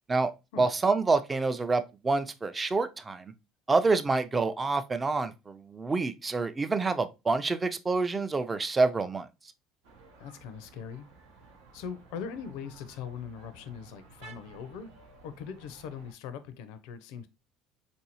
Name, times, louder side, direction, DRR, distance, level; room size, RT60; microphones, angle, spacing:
voice 1, 0.6-3.3 3.7-9.3, right 3 dB, 25° right, 0.4 m, -27 dB
sound 1, 9.8-16.1, right 3 dB, 80° right, 0.7 m, -54 dB
voice 2, 10.2-11.1 11.7-14.9 15.2-17.3, left 7 dB, 70° left, 0.4 m, -41 dB
3.9 x 2.6 x 2.8 m
hypercardioid pair, 70°, 0 cm